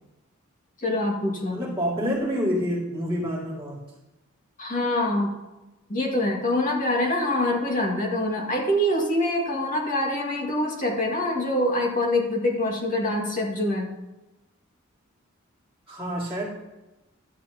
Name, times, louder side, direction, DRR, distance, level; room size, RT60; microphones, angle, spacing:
voice 1, 0.8-1.7 4.6-5.3 5.9-14.0, left 1 dB, 40° left, 0 dB, 2.0 m, -25 dB
voice 2, 1.5-3.8 15.9-16.4, equal, 10° right, -10 dB, 2.2 m, -27 dB
12.5 x 9.2 x 2.9 m, 1.0 s
head